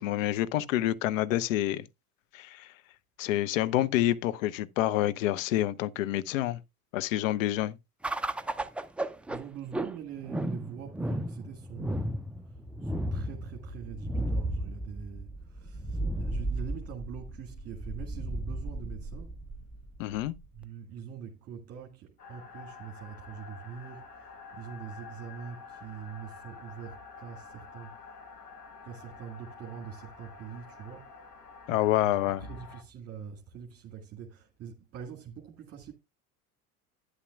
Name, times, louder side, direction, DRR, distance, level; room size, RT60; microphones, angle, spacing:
voice 1, 0.0-1.9 2.3-2.7 3.2-6.6 6.9-7.8 20.0-20.3 31.7-32.5, left 14 dB, 60° left, 0.8 m, -28 dB
sound 1, 8.0-20.6, right 1 dB, 5° right, 0.4 m, -34 dB
voice 2, 9.3-19.4 20.5-28.1 28.8-31.2 31.9-35.9, right 7 dB, 35° right, 1.8 m, -44 dB
sound 2, 22.2-32.8, left 4 dB, 85° left, 1.6 m, -49 dB
11.5 x 9.6 x 2.4 m
figure-of-eight pair, 75°, 45 cm